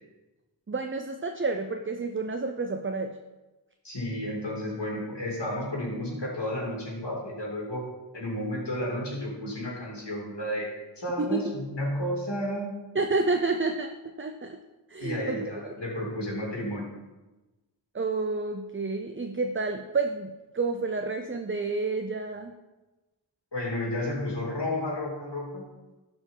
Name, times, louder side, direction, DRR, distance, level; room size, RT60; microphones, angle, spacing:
voice 1, 0.7-3.2 11.2-11.4 12.9-14.6 14.9-15.7 17.9-22.5, right 3 dB, 30° right, 5 dB, 0.6 m, -30 dB
voice 2, 3.8-7.9 8.1-12.7 15.0-16.9 23.5-25.6, left 1 dB, 65° left, -2 dB, 2.9 m, -32 dB
11.5 x 4.5 x 5.6 m, 1.1 s
wide cardioid pair, 45°, 44 cm